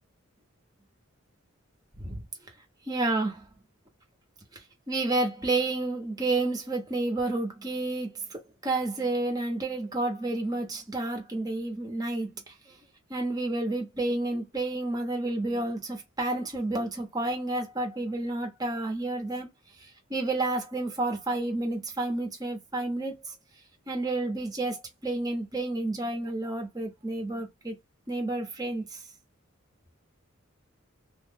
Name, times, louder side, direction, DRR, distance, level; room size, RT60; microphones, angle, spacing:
voice 1, 2.9-3.5 4.9-12.3 12.7-12.8 13.1-19.5 20.1-23.2 23.9-27.7 28.1-28.8, right 2 dB, 20° right, 1.2 m, -30 dB
3.0 x 2.6 x 3.8 m
head